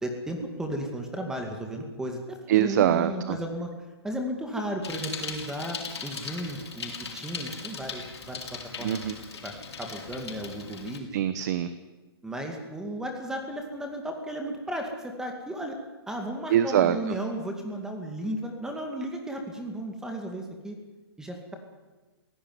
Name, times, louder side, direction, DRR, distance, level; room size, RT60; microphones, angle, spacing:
voice 1, 0.0-3.7 4.0-8.4 8.8-9.0 9.4-11.1 12.2-15.8 16.1-20.8 21.2-21.6, right 1 dB, 5° right, 3 dB, 2.2 m, -34 dB
voice 2, 2.5-3.4 8.8-9.2 11.1-11.7 16.5-17.1, right 11 dB, 45° right, 12 dB, 1.1 m, -24 dB
Bicycle, 4.8-11.0, left 5 dB, 85° left, 5.4 m, -39 dB
21.5 x 16.5 x 9.6 m, 1.2 s
hypercardioid pair, 155°, 13 cm